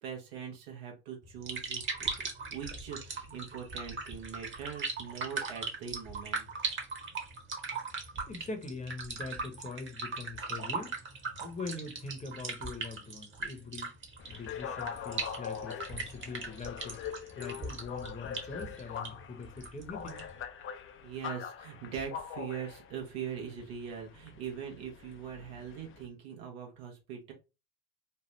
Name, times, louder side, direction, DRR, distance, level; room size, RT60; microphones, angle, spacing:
voice 1, 0.0-6.5 21.0-27.3, right 7 dB, 75° right, 1.1 m, -42 dB
sound 1, 1.2-20.4, right 4 dB, 40° right, 1.1 m, -39 dB
voice 2, 8.3-13.9 14.3-17.0 17.4-20.2, left 3 dB, 20° left, 0.9 m, -43 dB
sound 2, 14.2-26.1, left 7 dB, 40° left, 0.5 m, -43 dB
3.3 x 2.1 x 3.0 m
hypercardioid pair, 60°, 32 cm